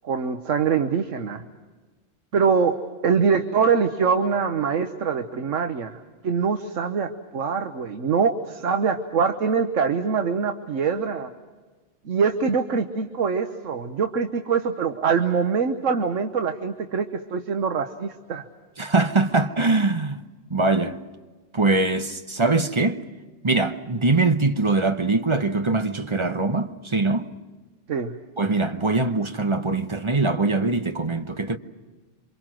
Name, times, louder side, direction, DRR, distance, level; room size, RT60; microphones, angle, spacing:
voice 1, 0.0-1.4 2.3-2.8 3.0-6.0 6.2-11.3 12.0-18.4 27.9-28.1, right 6 dB, 85° right, 1.4 m, -24 dB
voice 2, 18.8-20.2 20.5-21.0 21.5-23.0 23.4-27.3 28.4-31.6, right 3 dB, 25° right, 0.9 m, -22 dB
28.0 x 25.5 x 6.2 m
omnidirectional pair, 1.3 m